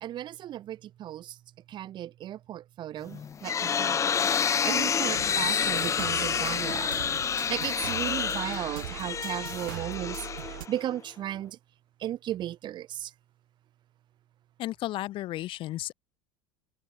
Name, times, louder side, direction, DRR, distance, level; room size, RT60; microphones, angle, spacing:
voice 1, 0.0-1.4 1.7-4.1 4.6-6.9 7.5-10.2 10.4-11.6 12.0-13.1, right 12 dB, 45° right, 1.5 m, -35 dB
sound 1, 3.1-11.0, left 7 dB, 30° left, 1.0 m, -29 dB
sound 2, 5.2-10.7, right 16 dB, 85° right, 0.8 m, -41 dB
voice 2, 14.6-15.9, left 15 dB, 50° left, 1.8 m, -33 dB
supercardioid pair, 95°, 11 cm